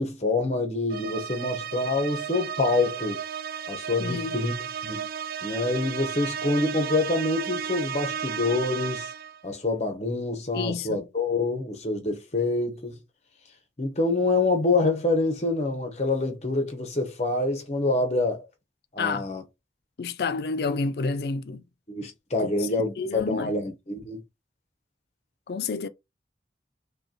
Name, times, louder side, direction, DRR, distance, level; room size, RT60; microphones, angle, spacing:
voice 1, 0.0-3.2 3.7-4.5 4.8-5.1 5.4-9.1 9.4-13.0 13.8-18.4 18.9-19.4 21.9-24.2, left 2 dB, 35° left, 0.8 m, -26 dB
sound 1, 0.9-9.4, right 8 dB, 55° right, 0.3 m, -34 dB
voice 2, 4.0-4.4 10.5-11.0 19.0-19.3 20.0-21.6 22.4-22.5 23.0-23.5 25.5-25.9, left 4 dB, 60° left, 0.4 m, -29 dB
5.3 x 2.2 x 2.8 m
head